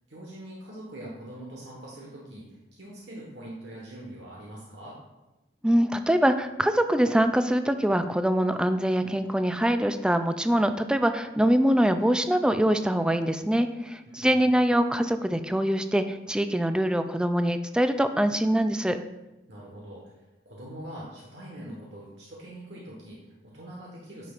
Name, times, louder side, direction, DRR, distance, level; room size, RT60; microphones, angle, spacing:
voice 1, 0.1-5.0 14.0-14.5 19.5-24.3, right 1 dB, 85° right, -4 dB, 1.4 m, -43 dB
voice 2, 5.6-19.0, equal, 5° right, 9 dB, 0.3 m, -24 dB
9.2 x 5.9 x 2.5 m, 1.0 s
head